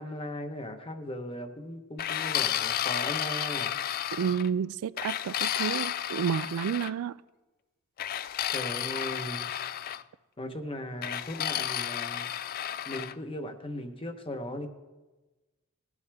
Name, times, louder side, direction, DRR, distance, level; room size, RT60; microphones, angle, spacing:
voice 1, 0.0-3.8 8.5-9.5 10.4-12.3 12.9-14.7, left 1 dB, 25° left, 0.9 m, -38 dB
sound 1, 2.0-4.5 5.0-6.9 8.0-10.0 11.0-13.1, left 10 dB, 45° left, 0.3 m, -32 dB
voice 2, 4.1-7.2, right 7 dB, 85° right, 0.3 m, -30 dB
19.5 x 10.5 x 3.5 m
head